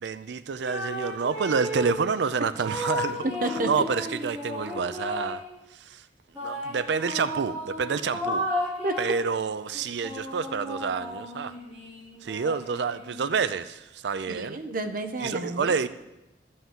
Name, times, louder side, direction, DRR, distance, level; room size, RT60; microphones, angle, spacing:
voice 1, 0.0-3.2 3.7-5.4 5.7-6.0 6.4-8.5 9.0-11.5 12.2-14.6 15.2-15.9, right 5 dB, 75° right, 14 dB, 0.4 m, -28 dB
sound 1, 0.6-2.0 2.6-5.5 6.3-9.2 9.7-13.4, left 1 dB, 10° right, 3.7 m, -34 dB
voice 2, 3.2-3.7 8.8-9.0 14.3-15.8, right 2 dB, 50° right, 7 dB, 0.9 m, -30 dB
12.5 x 5.7 x 7.4 m, 0.94 s
head